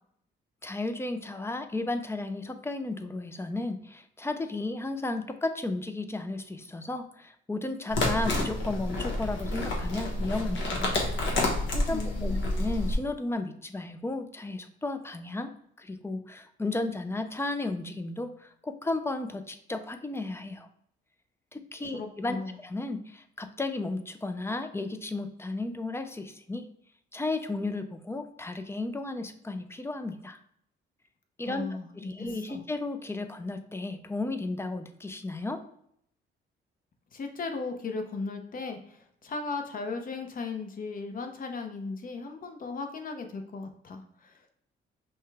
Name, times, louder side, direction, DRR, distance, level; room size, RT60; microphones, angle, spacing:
voice 1, 0.6-10.9 11.7-15.5 15.8-20.7 21.5-26.7 27.1-30.4 31.4-31.7 32.0-35.6, left 2 dB, 15° left, 9 dB, 0.4 m, -34 dB
sound 1, 7.9-13.0, left 1 dB, 70° left, 1.2 m, -29 dB
voice 2, 11.9-12.5 21.9-22.6 31.4-32.6 37.1-44.5, left 4 dB, 45° left, 5 dB, 0.8 m, -37 dB
5.5 x 2.2 x 3.4 m, 0.69 s
cardioid pair, 90°, 20 cm